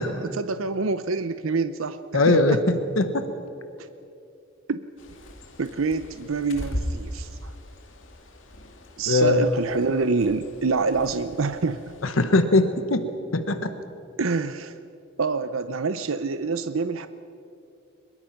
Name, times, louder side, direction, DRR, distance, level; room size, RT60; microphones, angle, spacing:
voice 1, 0.0-2.6 3.8-3.9 4.7-4.8 5.6-7.5 9.0-11.9 14.2-14.8 15.2-17.1, right 4 dB, 80° right, 11 dB, 0.7 m, -26 dB
voice 2, 2.1-3.3 9.1-9.5 12.0-13.0 13.3-13.7, left 2 dB, 80° left, 9 dB, 1.2 m, -21 dB
Bird, 5.0-12.0, equal, 65° left, 2.6 m, -38 dB
23.0 x 22.0 x 5.9 m, 2.7 s
head